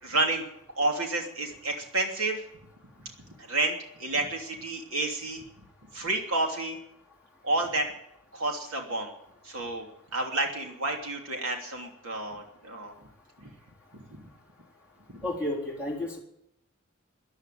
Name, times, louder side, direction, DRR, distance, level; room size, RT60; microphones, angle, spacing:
voice 1, 0.0-0.4 0.8-2.4 3.0-3.1 3.4-5.4 5.9-6.8 7.4-7.9 8.3-9.1 9.4-13.0 13.4-13.5 13.9-14.3 15.1-15.3, right 2 dB, 85° right, 2 dB, 3.1 m, -30 dB
voice 2, 15.2-16.2, left 1 dB, 5° right, -2 dB, 3.7 m, -31 dB
14.5 x 10.5 x 9.2 m, 0.77 s
head